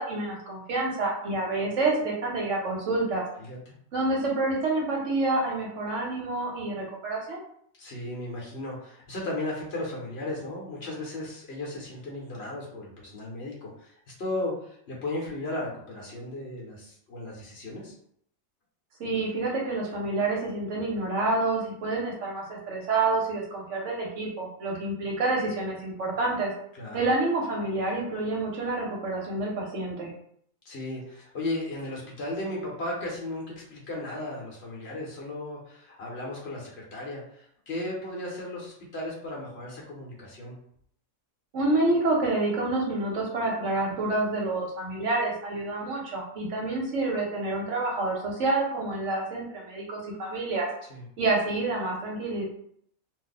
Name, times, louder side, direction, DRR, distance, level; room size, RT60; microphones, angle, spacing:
voice 1, 0.0-3.2 3.9-7.4 19.0-26.5 26.9-30.1 41.5-50.7 51.2-52.4, right 2 dB, 65° right, -2 dB, 1.0 m, -28 dB
voice 2, 7.8-17.9 26.7-27.1 30.6-40.5 50.9-51.1, left 1 dB, 55° left, -3 dB, 1.0 m, -35 dB
2.6 x 2.1 x 4.0 m, 0.67 s
omnidirectional pair, 1.5 m